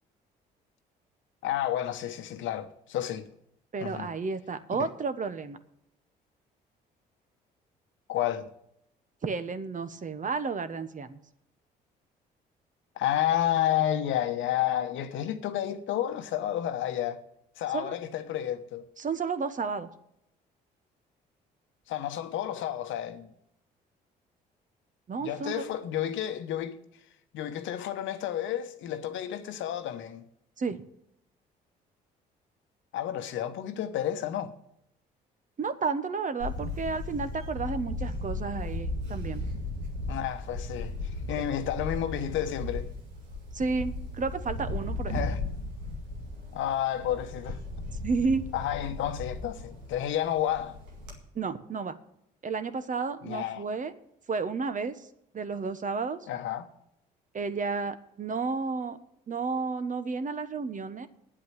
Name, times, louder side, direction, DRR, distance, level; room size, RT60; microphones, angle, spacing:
voice 1, 1.4-3.3 3.8-4.1 4.8-4.9 8.1-8.5 13.0-17.2 17.6-18.8 21.9-23.3 25.2-26.8 27.3-30.2 32.9-34.5 40.1-40.9 41.3-42.9 45.1-45.4 46.5-47.6 48.5-50.8 53.2-53.6 56.3-56.7, left 11 dB, 65° left, 1.1 m, -31 dB
voice 2, 3.7-5.6 9.2-11.2 17.7-17.9 19.0-19.9 25.1-25.7 30.6-30.8 35.6-39.4 41.4-41.5 43.5-45.2 48.0-48.4 51.3-52.0 52.4-53.9 54.3-55.1 55.3-56.2 57.3-59.0 59.3-61.1, right 4 dB, 40° right, 1.2 m, -32 dB
Camera, 36.4-51.2, left 2 dB, 90° right, 2.0 m, -36 dB
8.8 x 8.2 x 9.1 m
hypercardioid pair, 50°, 21 cm